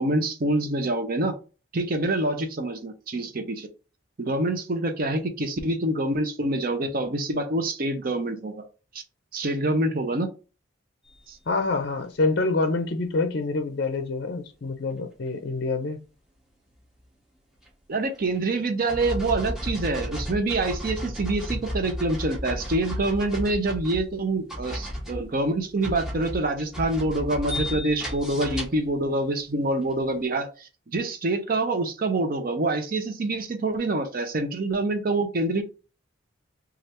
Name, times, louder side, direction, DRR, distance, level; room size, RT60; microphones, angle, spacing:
voice 1, 0.0-1.3 1.7-3.7 4.2-8.6 9.3-10.3 11.3-11.4 17.9-35.6, right 2 dB, 45° right, 0.6 m, -26 dB
voice 2, 11.5-16.0, left 3 dB, 55° left, 0.5 m, -26 dB
sound 1, 17.7-17.8 18.1-18.4 18.9-24.2 24.5-28.9 29.8-29.9, equal, 5° right, 0.7 m, -33 dB
3.2 x 2.4 x 2.8 m
head